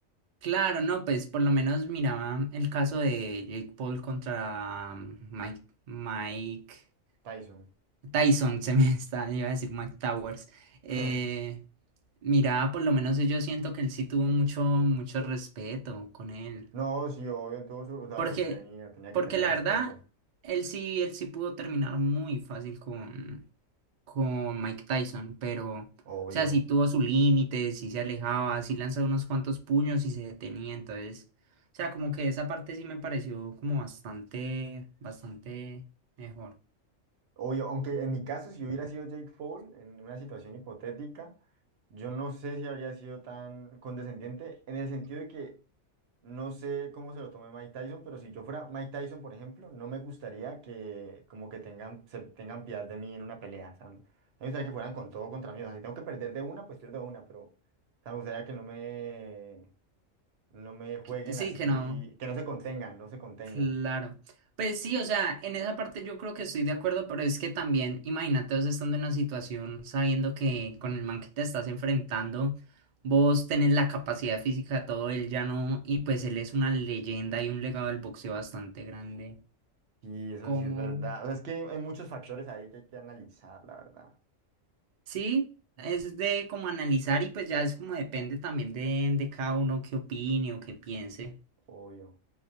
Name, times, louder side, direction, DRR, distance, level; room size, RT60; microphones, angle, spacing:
voice 1, 0.4-5.6 5.9-6.8 8.0-11.6 12.2-16.6 18.2-18.6 19.1-19.9 20.4-23.4 24.1-25.9 26.3-31.2 31.8-35.8 36.2-36.5 61.3-62.0 63.5-64.1 64.6-72.6 73.0-79.4 80.4-81.1 85.1-85.4 85.8-91.3, right 2 dB, 90° right, 0.4 m, -30 dB
voice 2, 7.2-7.7 10.9-11.2 16.7-19.8 26.1-26.5 37.4-41.3 41.9-45.6 46.2-54.0 54.4-57.5 58.0-59.7 60.5-63.7 80.0-84.1 91.7-92.1, right 4 dB, 60° right, 0.8 m, -39 dB
2.2 x 2.2 x 2.6 m
omnidirectional pair, 1.4 m